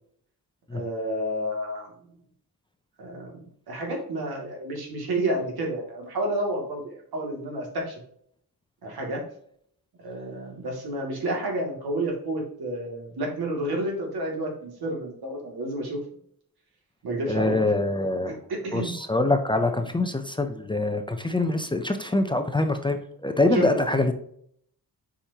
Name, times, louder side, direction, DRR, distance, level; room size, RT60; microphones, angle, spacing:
voice 1, 0.7-1.9 3.0-3.4 3.7-8.0 8.8-9.2 10.0-16.0 17.0-17.5 18.3-18.9 23.5-23.7 23.9-24.0, right 1 dB, 80° right, 0 dB, 2.5 m, -30 dB
voice 2, 17.3-18.4 18.7-24.1, left 2 dB, 15° left, 6 dB, 0.5 m, -24 dB
7.3 x 5.1 x 2.9 m, 0.66 s
wide cardioid pair, 160°, 37 cm